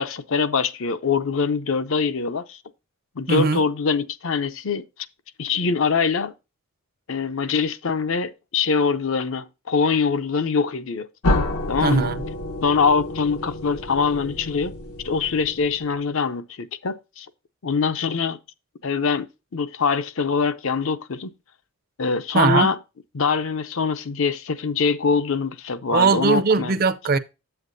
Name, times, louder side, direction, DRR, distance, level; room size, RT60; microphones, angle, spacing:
voice 1, 0.0-2.6 3.2-4.8 5.4-6.3 7.1-11.1 11.7-12.1 12.6-14.7 15.0-17.3 17.6-18.4 18.8-19.3 19.5-21.3 22.0-22.8 23.1-26.7, left 5 dB, 65° left, 0.6 m, -23 dB
voice 2, 3.3-3.6 11.8-12.2 22.3-22.7 25.9-27.2, right 4 dB, 45° right, 0.5 m, -19 dB
sound 1, 11.2-16.0, left 2 dB, 90° left, 1.1 m, -29 dB
8.1 x 7.9 x 2.6 m
head